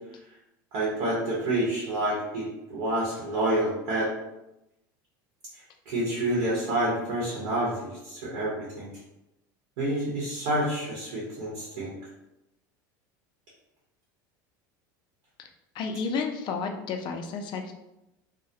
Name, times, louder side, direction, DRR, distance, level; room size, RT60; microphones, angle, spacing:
voice 1, 0.7-4.1 5.9-8.9 9.8-11.9, right 1 dB, 70° right, -5 dB, 0.9 m, -28 dB
voice 2, 15.7-17.7, left 5 dB, 45° left, 4 dB, 0.4 m, -31 dB
2.2 x 2.1 x 2.7 m, 0.92 s
hypercardioid pair, 95°, 11 cm